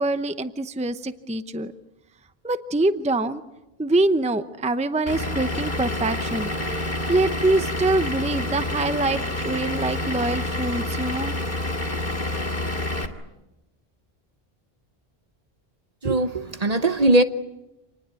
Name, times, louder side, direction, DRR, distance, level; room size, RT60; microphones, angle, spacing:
voice 1, 0.0-1.7 2.4-3.4 3.8-6.5 7.1-11.3, right 2 dB, 5° right, 0.7 m, -24 dB
Vehicle / Engine, 5.1-13.1, left 1 dB, 50° left, 2.4 m, -28 dB
voice 2, 16.0-17.2, right 2 dB, 40° right, 1.0 m, -20 dB
27.0 x 20.0 x 8.4 m
omnidirectional pair, 1.0 m